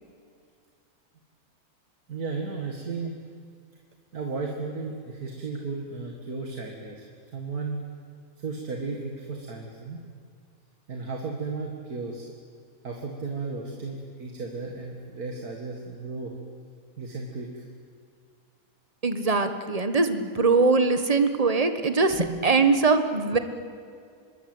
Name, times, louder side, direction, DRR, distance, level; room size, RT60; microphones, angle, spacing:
voice 1, 2.1-3.2 4.1-7.0 7.3-7.8 8.4-10.0 10.9-12.3 12.8-16.3 17.0-17.7, right 4 dB, 70° right, 1 dB, 2.5 m, -34 dB
voice 2, 19.0-23.4, right 3 dB, 25° right, 9 dB, 1.5 m, -22 dB
26.0 x 21.5 x 8.0 m, 2.3 s
omnidirectional pair, 1.6 m